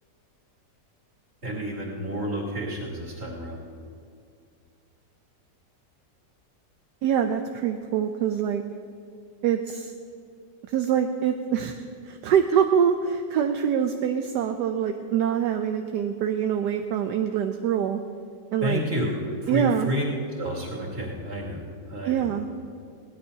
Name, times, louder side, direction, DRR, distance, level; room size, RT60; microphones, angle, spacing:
voice 1, 1.4-3.6 18.6-19.1 19.4-20.1 20.4-21.6 21.9-22.3, equal, 35° right, -4 dB, 2.8 m, -30 dB
voice 2, 7.0-8.6 9.4-9.9 10.7-18.0 18.5-18.8 19.5-19.9 22.0-22.5, right 8 dB, 75° right, 5 dB, 1.2 m, -25 dB
21.5 x 17.0 x 2.8 m, 2.3 s
omnidirectional pair, 1.9 m